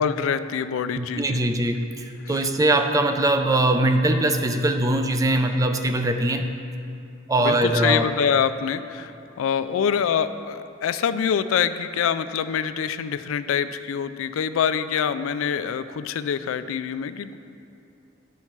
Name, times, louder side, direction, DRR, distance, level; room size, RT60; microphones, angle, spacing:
voice 1, 0.0-1.4 2.3-2.5 7.4-17.4, left 7 dB, 85° left, 11 dB, 0.3 m, -25 dB
voice 2, 1.0-6.5 7.3-8.1, right 1 dB, 15° right, 6 dB, 0.4 m, -22 dB
11.0 x 5.8 x 4.6 m, 2.6 s
head